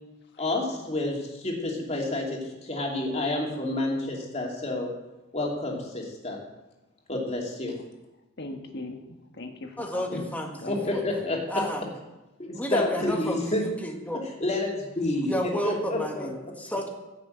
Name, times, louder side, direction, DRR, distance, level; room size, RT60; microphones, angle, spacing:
voice 1, 0.4-4.9 5.3-6.4 7.1-7.7 10.7-11.6 12.4-13.6 14.4-15.3 15.6-16.3, left 2 dB, 30° left, -1 dB, 2.7 m, -29 dB
voice 2, 8.4-10.3 10.6-10.9 13.0-13.1, left 2 dB, 55° left, 4 dB, 1.5 m, -40 dB
voice 3, 9.8-11.1 11.5-11.8 12.6-14.2 15.2-16.9, equal, 5° left, 2 dB, 1.6 m, -32 dB
15.5 x 6.6 x 7.9 m, 1.0 s
head